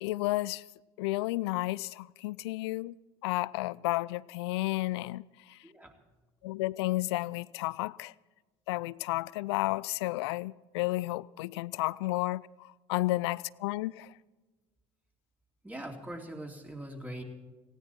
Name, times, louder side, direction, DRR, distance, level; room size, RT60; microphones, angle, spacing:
voice 1, 0.0-0.6 1.0-3.0 3.2-5.6 6.4-8.1 8.7-14.1, left 19 dB, 75° left, 0.4 m, -32 dB
voice 2, 15.6-17.2, right 1 dB, 10° right, 3.4 m, -42 dB
18.5 x 17.0 x 4.6 m
hypercardioid pair, 65°, 14 cm